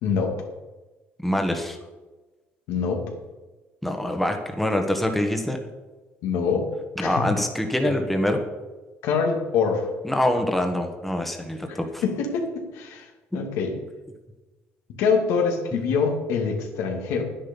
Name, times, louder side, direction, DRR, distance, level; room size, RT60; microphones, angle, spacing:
voice 1, 0.0-0.4 2.7-3.0 6.2-6.7 7.0-7.3 7.8-7.9 9.0-9.9 11.7-13.1 13.3-13.8 15.0-17.2, left 5 dB, 85° left, 2 dB, 2.3 m, -25 dB
voice 2, 1.2-1.8 3.8-5.6 7.0-8.4 10.0-12.0, left 1 dB, 5° left, 4 dB, 1.4 m, -25 dB
11.0 x 10.0 x 5.4 m, 1.2 s
cardioid pair, 130°, 5 cm